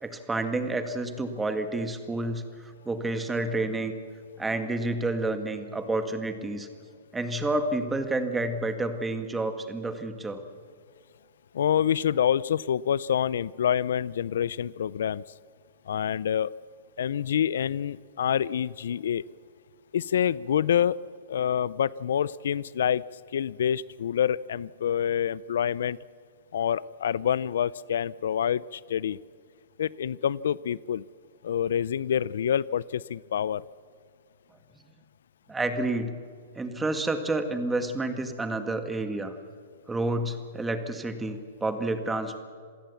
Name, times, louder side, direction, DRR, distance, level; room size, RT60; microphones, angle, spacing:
voice 1, 0.0-3.9 4.4-6.7 7.1-10.4 35.5-36.2 36.6-39.4 39.9-42.4, right 2 dB, 10° right, 8 dB, 1.9 m, -29 dB
voice 2, 11.5-15.2 15.9-16.5 17.0-19.2 19.9-21.0 21.3-23.0 23.3-26.0 26.5-29.2 29.8-31.0 31.4-33.6, left 9 dB, 75° left, 21 dB, 0.5 m, -27 dB
27.5 x 16.5 x 7.2 m, 2.1 s
hypercardioid pair, 135°, 0 cm